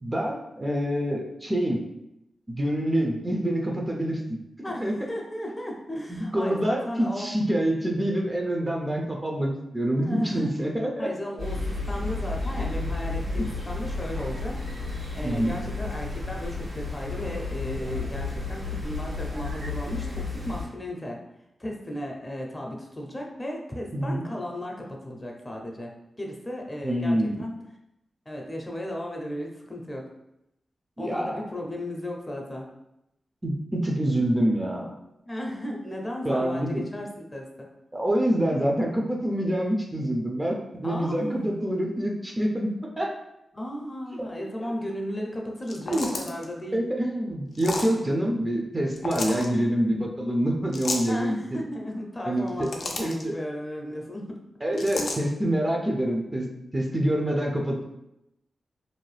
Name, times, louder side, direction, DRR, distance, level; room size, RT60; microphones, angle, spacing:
voice 1, 0.0-1.8 2.5-5.0 6.1-11.1 15.2-15.6 23.9-24.2 26.8-27.4 31.0-31.4 33.4-34.9 36.2-36.8 37.9-43.2 44.1-44.2 45.9-46.1 46.7-51.4 52.2-52.7 53.0-53.4 54.6-56.5 56.7-57.8, right 1 dB, 25° right, 0 dB, 0.5 m, -26 dB
voice 2, 4.6-7.3 10.0-10.5 11.0-14.6 15.1-21.2 21.6-27.6 28.3-30.1 31.0-32.7 35.3-37.7 40.8-41.6 43.5-46.8 51.1-54.4 54.7-55.1, left 1 dB, 25° left, 0 dB, 0.6 m, -35 dB
sound 1, 11.4-20.7, left 3 dB, 90° right, 1.5 m, -32 dB
sound 2, 45.6-46.5 47.5-47.9 48.9-49.5 50.7-51.1 52.4-53.2 54.8-55.2, left 2 dB, 70° left, 0.4 m, -32 dB
2.6 x 2.1 x 3.2 m, 0.86 s
cardioid pair, 55°, 0 cm